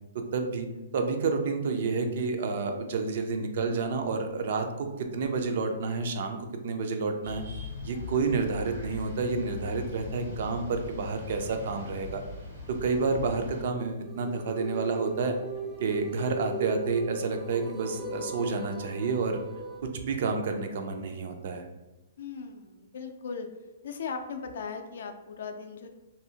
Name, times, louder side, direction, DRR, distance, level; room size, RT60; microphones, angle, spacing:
voice 1, 0.3-0.7 0.9-7.4 7.8-12.2 12.7-15.4 15.8-19.4 19.8-21.7, right 4 dB, 60° right, 5 dB, 0.4 m, -29 dB
sound 1, 7.2-13.6, left 2 dB, 85° right, 1.5 m, -41 dB
sound 2, 13.8-19.8, right 2 dB, 5° right, 0.5 m, -38 dB
voice 2, 22.2-23.5 23.8-25.9, left 5 dB, 70° left, 6 dB, 0.3 m, -38 dB
2.6 x 2.0 x 2.7 m, 1.0 s
hypercardioid pair, 150°, 0 cm